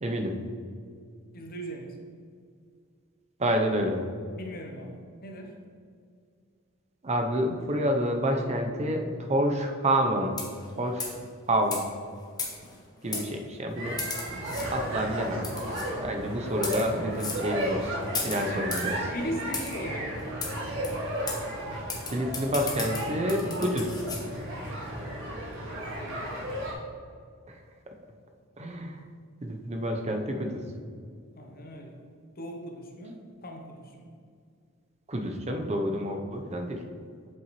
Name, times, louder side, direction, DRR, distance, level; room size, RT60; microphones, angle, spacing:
voice 1, 0.0-0.4 3.4-4.0 7.0-10.4 10.8-11.1 11.5-11.8 13.0-14.0 14.7-15.5 16.0-18.0 18.2-19.1 22.1-24.0 27.5-27.6 28.6-29.0 29.4-30.6 35.1-36.8, right 1 dB, 30° right, 4 dB, 0.7 m, -28 dB
voice 2, 1.3-2.0 4.3-5.6 13.1-13.2 13.9-14.6 15.9-16.1 18.4-18.7 19.1-20.6 25.8-26.4 31.3-32.0 32.4-34.1, equal, 45° left, 3 dB, 0.7 m, -40 dB
sound 1, 10.3-10.7 11.0-11.2 11.7-11.8 12.4-12.8 13.1-13.3 14.0-14.7 15.4-15.9 16.5-16.9 17.2-17.4 18.1-18.9 19.5-19.8 20.4-20.5 20.8-20.9 21.3-21.4 21.9-24.2, left 3 dB, 20° left, 1.1 m, -34 dB
sound 2, 13.8-26.7, right 1 dB, 65° right, 1.6 m, -34 dB
7.7 x 5.7 x 3.1 m, 2.2 s
head